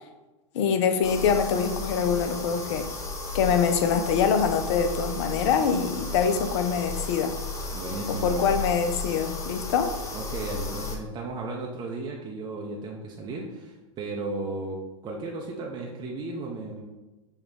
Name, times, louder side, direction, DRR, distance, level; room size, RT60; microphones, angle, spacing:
voice 1, 0.5-2.9 3.3-7.4 8.1-9.9, left 6 dB, 55° left, 8 dB, 0.5 m, -24 dB
sound 1, 1.0-11.0, left 3 dB, 20° left, 0.6 m, -34 dB
voice 2, 7.7-8.5 10.1-16.8, right 3 dB, 25° right, -1 dB, 0.6 m, -35 dB
5.5 x 2.3 x 3.5 m, 1.1 s
hypercardioid pair, 105°, 17 cm